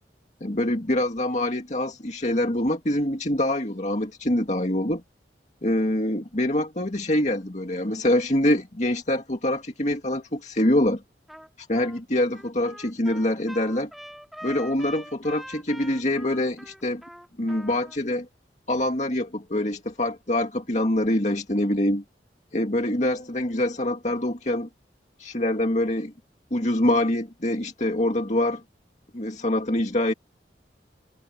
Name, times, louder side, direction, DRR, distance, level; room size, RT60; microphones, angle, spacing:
voice 1, 0.4-5.0 5.6-11.0 11.6-13.9 14.4-17.0 17.4-18.3 18.7-22.0 22.5-24.7 25.2-26.1 26.5-28.6 29.1-30.1, left 1 dB, 40° left, 2.2 m, -25 dB
Trumpet, 11.3-11.5 11.7-18.0, equal, ahead, 2.5 m, -43 dB
head